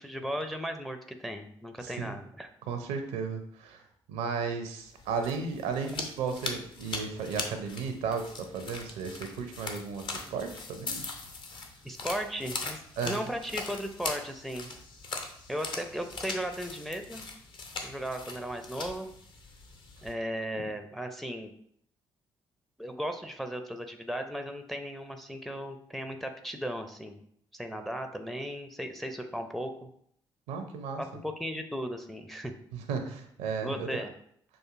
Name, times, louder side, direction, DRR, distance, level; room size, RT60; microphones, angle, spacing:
voice 1, 0.0-2.5 11.8-14.7 15.5-17.2 17.8-19.1 20.0-21.5 22.8-27.2 27.5-29.7 31.0-32.5 33.6-34.1, equal, ahead, 6 dB, 0.5 m, -36 dB
voice 2, 1.8-2.1 2.7-3.8 4.1-11.0 13.0-13.2 20.5-20.7 30.5-31.0 32.7-34.0, right 5 dB, 65° right, 6 dB, 0.5 m, -34 dB
sound 1, 4.9-20.1, left 3 dB, 40° left, 0.7 m, -40 dB
6.0 x 2.5 x 2.5 m, 0.67 s
figure-of-eight pair, 40°, 12 cm